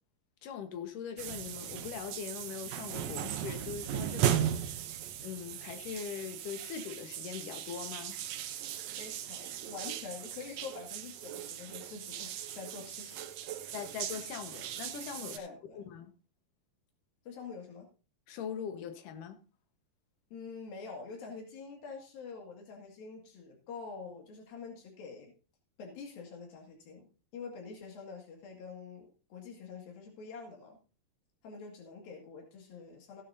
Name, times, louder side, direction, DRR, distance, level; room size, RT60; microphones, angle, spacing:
voice 1, 0.4-4.8 5.2-8.2 13.7-15.5 15.8-16.1 18.3-19.4, left 7 dB, 70° left, 2.8 m, -41 dB
sound 1, 1.2-15.4, right 10 dB, 70° right, 1.6 m, -37 dB
voice 2, 9.0-13.2 13.6-13.7 15.3-15.9 17.3-17.9 20.3-25.3 25.8-27.1 27.3-30.8 31.4-33.2, left 5 dB, 85° left, 4.0 m, -46 dB
16.0 x 10.0 x 2.7 m
omnidirectional pair, 4.0 m